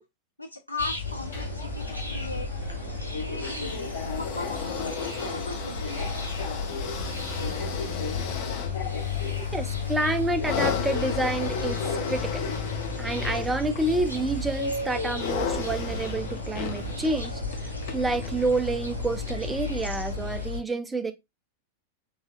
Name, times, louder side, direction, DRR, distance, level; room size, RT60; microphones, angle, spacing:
voice 1, 0.4-2.5 3.2-6.1, left 3 dB, 85° left, 0.4 m, -38 dB
sound 1, 0.8-20.6, left 4 dB, 85° right, 1.0 m, -34 dB
Subway metro underground, 1.0-20.4, left 2 dB, 70° left, 2.1 m, -38 dB
sound 2, 3.4-18.8 19.7-19.8, left 7 dB, 50° left, 0.9 m, -36 dB
voice 2, 9.4-12.5 13.0-17.4 17.9-21.1, right 2 dB, 10° right, 0.5 m, -28 dB
4.1 x 3.2 x 2.4 m
figure-of-eight pair, 90°, 0 cm